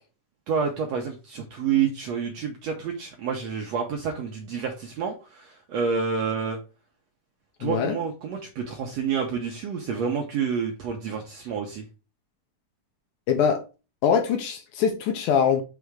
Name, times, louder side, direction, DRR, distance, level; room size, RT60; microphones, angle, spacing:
voice 1, 0.5-6.6 7.6-11.8, right 6 dB, 70° right, 1.6 m, -28 dB
voice 2, 7.6-8.0 13.3-13.6 14.0-15.6, left 7 dB, 75° left, 2.1 m, -23 dB
6.3 x 3.5 x 4.9 m
omnidirectional pair, 4.1 m